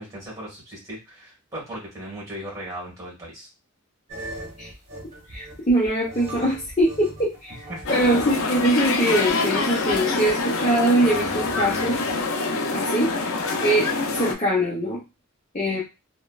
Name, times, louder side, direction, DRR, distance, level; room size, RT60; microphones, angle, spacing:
voice 1, 0.0-3.5 7.7-8.0, right 1 dB, 15° right, -4 dB, 1.4 m, -37 dB
sound 1, 4.1-8.5 8.8-12.2, right 1 dB, 35° right, 1.0 m, -40 dB
voice 2, 5.3-7.6 7.9-12.0 12.7-13.1 13.6-15.0 15.5-15.8, right 1 dB, 30° left, -7 dB, 0.7 m, -22 dB
sound 2, 7.9-14.3, left 3 dB, 65° left, 0.4 m, -25 dB
3.1 x 2.1 x 2.3 m, 0.27 s
head